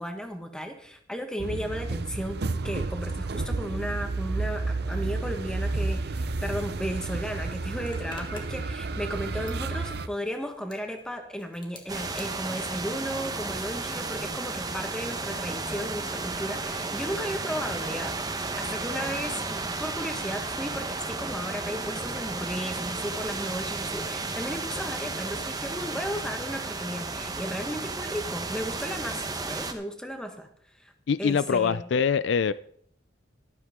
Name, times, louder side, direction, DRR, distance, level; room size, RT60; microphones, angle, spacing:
voice 1, 0.0-30.5 30.8-30.9 31.2-31.9, equal, 5° left, 1.4 m, -35 dB
sound 1, 1.4-10.1, right 3 dB, 60° right, 0.7 m, -31 dB
Zipper (clothing), 7.8-14.0 14.3-19.2, left 2 dB, 25° left, 1.7 m, -52 dB
sound 2, 11.9-29.7, right 3 dB, 20° right, 1.0 m, -33 dB
voice 2, 31.1-32.5, left 6 dB, 75° left, 0.4 m, -24 dB
13.0 x 12.5 x 3.7 m
head